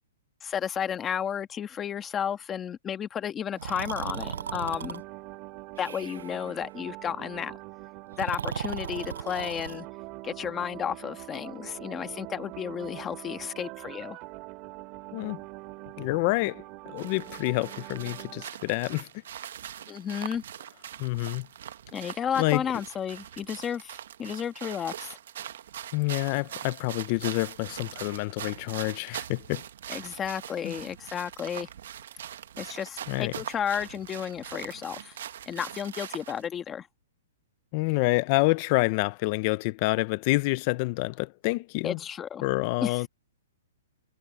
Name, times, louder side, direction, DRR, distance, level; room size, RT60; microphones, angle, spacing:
voice 1, 0.4-5.0 5.8-7.6 8.2-9.9 10.2-14.2 19.9-20.4 21.9-25.2 29.9-31.7 32.6-35.2 35.5-36.9 41.8-42.4 42.8-43.0, left 8 dB, 10° left, 1.3 m, -32 dB
Breathing, 3.6-5.0 5.8-6.4 8.1-9.8, right 7 dB, 75° right, 0.4 m, -36 dB
sound 1, 4.0-18.5, right 21 dB, 25° right, 3.2 m, -43 dB
voice 2, 16.0-16.6 16.9-19.1 21.0-21.5 22.4-22.6 25.9-29.6 30.6-30.7 33.1-33.3 37.7-42.0 42.4-43.1, left 23 dB, 30° left, 0.4 m, -27 dB
sound 2, 17.0-36.5, right 10 dB, 55° right, 1.2 m, -42 dB
hypercardioid pair, 170°, 0 cm